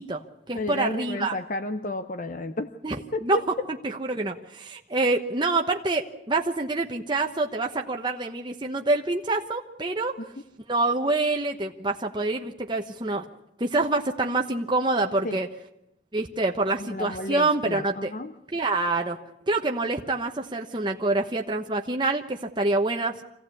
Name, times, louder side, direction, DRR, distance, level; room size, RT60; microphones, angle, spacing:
voice 1, 0.0-1.3 2.8-3.0 3.2-3.4 3.8-10.1 10.7-13.2 13.6-15.5 16.1-18.1 18.5-19.2 19.5-23.2, right 2 dB, 25° right, 2 dB, 1.1 m, -26 dB
voice 2, 0.5-2.7 3.1-3.4 15.2-15.4 16.8-18.3, left 1 dB, 45° left, 9 dB, 0.8 m, -32 dB
25.5 x 16.0 x 8.5 m, 0.87 s
head